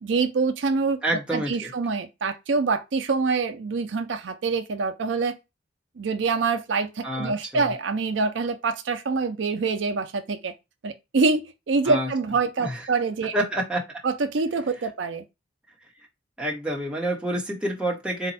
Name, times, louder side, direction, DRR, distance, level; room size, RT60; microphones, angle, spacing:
voice 1, 0.0-5.3 6.0-10.5 10.8-13.3 14.0-15.2, right 4 dB, 70° right, 0.5 m, -25 dB
voice 2, 1.0-1.7 7.0-7.7 11.8-12.1 12.6-12.8 13.3-14.0 16.4-18.3, right 1 dB, 5° right, 1.1 m, -28 dB
4.2 x 2.3 x 4.0 m
head